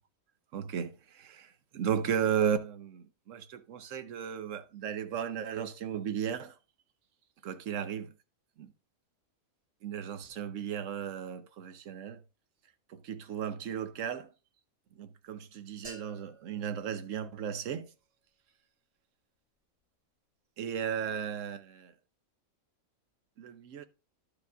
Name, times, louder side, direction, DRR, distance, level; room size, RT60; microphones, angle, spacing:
voice 1, 0.5-6.6 7.4-8.2 8.6-8.7 9.8-12.2 12.9-14.3 14.9-17.9 20.6-21.9 23.4-23.8, right 8 dB, 65° right, 1.1 m, -35 dB
sound 1, 15.8-17.8, right 2 dB, 45° right, 5.8 m, -53 dB
11.5 x 5.1 x 3.5 m
omnidirectional pair, 1.4 m